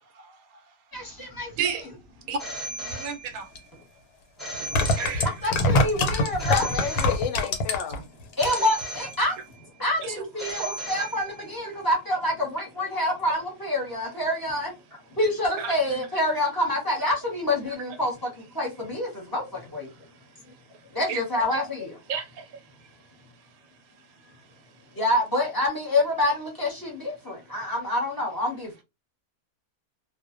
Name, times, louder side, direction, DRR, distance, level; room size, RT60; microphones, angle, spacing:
voice 1, 0.9-1.5 2.9-3.0 5.4-6.7 8.4-9.4 9.8-14.7 15.1-18.3 18.5-19.9 20.9-22.0 24.9-28.7, left 1 dB, 20° left, 0.8 m, -27 dB
Telephone, 2.4-3.6 4.4-5.6 6.4-7.6 8.4-9.6 10.4-11.6, equal, ahead, 0.4 m, -37 dB
voice 2, 3.0-3.5 5.0-5.3 10.0-10.1 10.6-10.9 15.6-15.8 21.1-21.2 22.1-22.4, right 6 dB, 80° right, 1.0 m, -30 dB
sound 1, 3.6-3.7 4.5-8.0 8.3-8.8 9.1-9.2, left 1 dB, 90° left, 1.2 m, -23 dB
voice 3, 6.5-8.1, left 9 dB, 65° left, 0.7 m, -30 dB
2.4 x 2.1 x 2.4 m
omnidirectional pair, 1.5 m